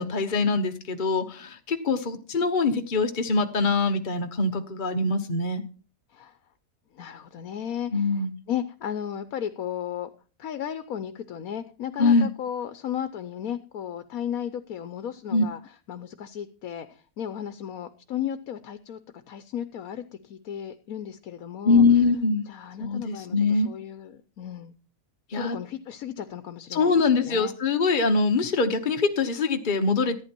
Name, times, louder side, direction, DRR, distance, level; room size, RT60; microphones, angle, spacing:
voice 1, 0.0-5.6 7.9-8.3 12.0-12.3 15.3-15.4 21.6-22.5 22.8-23.7 25.3-25.6 26.7-30.2, left 4 dB, 40° left, 5 dB, 1.1 m, -23 dB
voice 2, 6.9-10.1 10.4-19.0 19.3-21.8 22.5-24.7 25.3-27.5, left 9 dB, 85° left, 10 dB, 1.3 m, -35 dB
14.5 x 9.5 x 4.5 m, 0.39 s
omnidirectional pair, 1.5 m